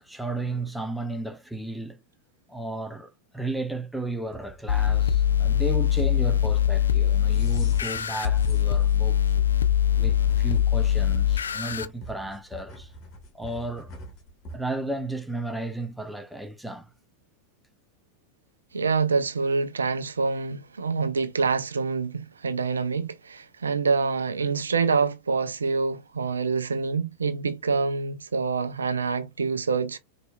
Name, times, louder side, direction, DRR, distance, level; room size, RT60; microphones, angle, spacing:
voice 1, 0.0-2.0 2.5-9.2 9.9-12.9 13.3-13.9 14.5-16.9, right 2 dB, ahead, 0.5 m, -34 dB
sound 1, 4.3-14.6, right 1 dB, 35° left, 1.3 m, -46 dB
sound 2, 4.7-11.9, left 10 dB, 70° left, 0.3 m, -22 dB
voice 2, 18.7-30.0, right 4 dB, 70° right, 0.4 m, -26 dB
4.0 x 2.7 x 2.3 m
figure-of-eight pair, 90°, 0 cm